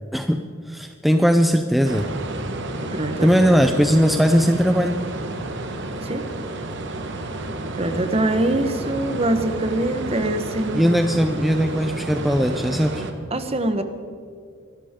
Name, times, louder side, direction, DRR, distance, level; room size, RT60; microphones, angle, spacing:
voice 1, 0.1-2.0 3.2-5.0 10.7-13.1, equal, ahead, 6 dB, 0.5 m, -19 dB
sound 1, 1.8-13.1, right 2 dB, 60° right, 1.4 m, -31 dB
voice 2, 2.8-3.3 6.0-6.2 7.7-11.0 13.3-13.8, right 1 dB, 30° right, 8 dB, 1.1 m, -24 dB
24.0 x 13.0 x 3.7 m, 2.3 s
head